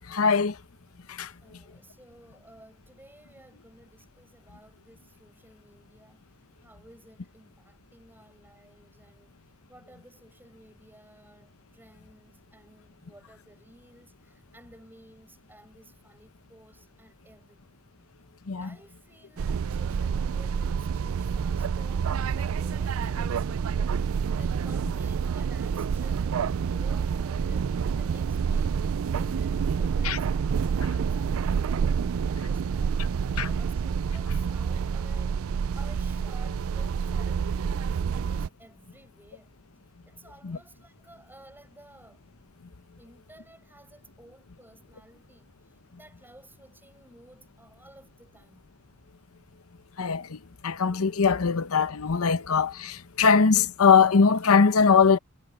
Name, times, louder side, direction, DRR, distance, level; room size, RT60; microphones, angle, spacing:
voice 1, 0.1-0.5 1.2-1.3 18.5-18.7 30.0-30.2 33.4-33.5 40.5-40.6 50.0-50.2 50.6-55.2, left 5 dB, 90° left, 0.8 m, -21 dB
voice 2, 1.4-6.2 6.6-9.3 9.7-17.8 18.6-24.0 24.3-35.3 35.7-39.5 40.1-42.2 42.9-45.5 46.0-48.6, right 1 dB, 10° right, 7.5 m, -54 dB
sound 1, 19.4-38.5, right 6 dB, 70° right, 0.4 m, -28 dB
head